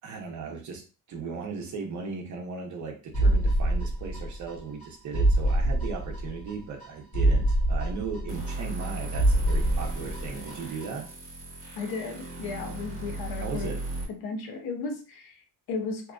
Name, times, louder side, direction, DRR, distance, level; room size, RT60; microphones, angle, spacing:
voice 1, 0.0-0.8 1.1-11.1 13.4-13.8, right 5 dB, 50° right, 0.7 m, -37 dB
sound 1, 3.1-4.5 4.8-4.9 5.1-6.5 6.8-6.9 7.1-8.8 9.1-10.5 10.8-10.9, right 1 dB, 40° left, 1.2 m, -24 dB
sound 2, 8.3-14.0, right 2 dB, 35° right, 1.0 m, -37 dB
voice 2, 11.8-13.7 14.1-16.1, left 4 dB, 90° left, 0.7 m, -35 dB
2.7 x 2.5 x 2.3 m
cardioid pair, 175°, 36 cm